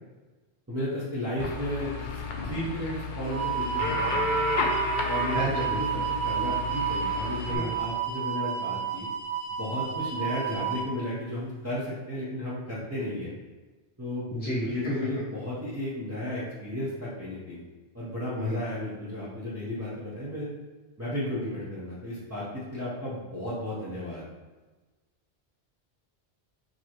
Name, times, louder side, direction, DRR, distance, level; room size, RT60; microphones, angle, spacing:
voice 1, 0.7-4.4 5.0-5.9 6.2-9.1 9.5-13.3 14.0-17.6 17.9-20.5 21.0-22.4 22.7-24.2, left 1 dB, 15° right, -9 dB, 0.8 m, -34 dB
sound 1, 1.4-7.6, left 4 dB, 60° left, 0.6 m, -32 dB
sound 2, 3.2-10.9, right 8 dB, 65° right, 0.9 m, -30 dB
voice 2, 5.3-6.0 7.4-7.7 14.3-14.9 18.4-18.6, equal, 15° left, -5 dB, 0.4 m, -32 dB
4.8 x 3.0 x 3.0 m, 1.2 s
omnidirectional pair, 1.1 m